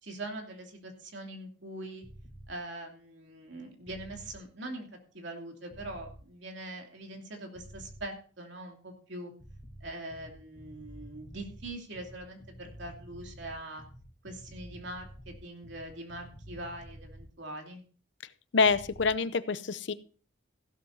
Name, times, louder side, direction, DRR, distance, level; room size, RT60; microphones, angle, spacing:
voice 1, 0.0-2.0 2.5-4.9 5.1-9.3 9.8-13.8 14.2-17.8, right 1 dB, 70° right, 2 dB, 2.7 m, -42 dB
sound 1, 2.0-2.5 3.9-4.3 5.7-6.2 7.5-8.0 9.4-17.3 18.6-19.1, equal, 20° left, 3.6 m, -49 dB
voice 2, 18.5-19.9, left 4 dB, 70° left, 14 dB, 0.6 m, -26 dB
16.0 x 12.0 x 2.7 m, 0.39 s
head